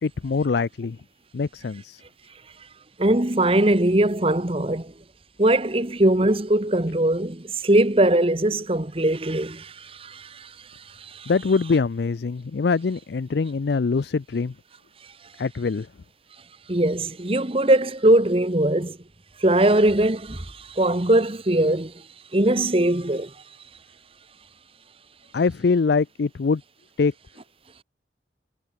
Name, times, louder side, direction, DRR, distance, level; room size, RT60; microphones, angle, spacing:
voice 1, 0.0-1.0 1.3-2.0 11.3-14.5 15.4-15.9 25.3-26.6 27.0-27.1, left 4 dB, 65° left, 0.4 m, -23 dB
voice 2, 3.0-4.9 5.4-10.5 11.0-11.3 16.7-19.0 19.4-21.9 22.3-23.3, right 1 dB, 30° right, 1.3 m, -21 dB
head